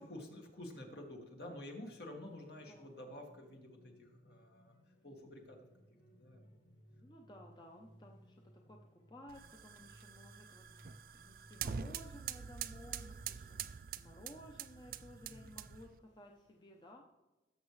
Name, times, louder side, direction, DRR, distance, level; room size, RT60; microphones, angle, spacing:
voice 1, 0.0-4.7 5.0-5.6 6.2-6.5 15.2-15.6, left 1 dB, 65° left, 1 dB, 2.0 m, -50 dB
sound 1, 1.4-16.9, equal, 80° left, 1.7 m, -64 dB
voice 2, 7.0-17.1, left 1 dB, 25° left, 1 dB, 0.7 m, -56 dB
sound 2, 9.3-16.0, right 8 dB, 50° right, 0.3 m, -46 dB
17.0 x 7.2 x 3.2 m, 1.1 s
head